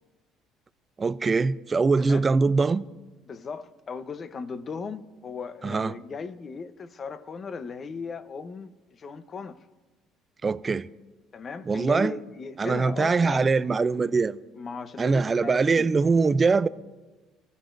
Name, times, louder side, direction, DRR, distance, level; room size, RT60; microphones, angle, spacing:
voice 1, 1.0-2.9 5.6-5.9 10.4-10.9 11.7-12.1 12.6-14.4 15.0-16.7, right 4 dB, 25° right, 0.5 m, -22 dB
voice 2, 3.3-9.6 11.3-13.5 14.5-15.9, left 5 dB, 35° left, 0.9 m, -37 dB
29.0 x 15.5 x 2.6 m
cardioid pair, 105°, 0 cm